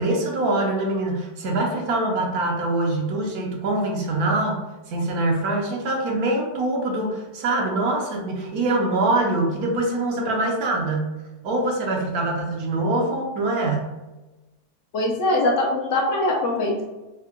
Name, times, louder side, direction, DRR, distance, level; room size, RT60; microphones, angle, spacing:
voice 1, 0.0-4.6 4.9-11.1 11.4-13.9, right 2 dB, 70° right, 0 dB, 1.2 m, -24 dB
voice 2, 14.9-16.8, left 2 dB, 65° left, -2 dB, 0.8 m, -22 dB
3.6 x 2.1 x 3.5 m, 1.1 s
omnidirectional pair, 1.6 m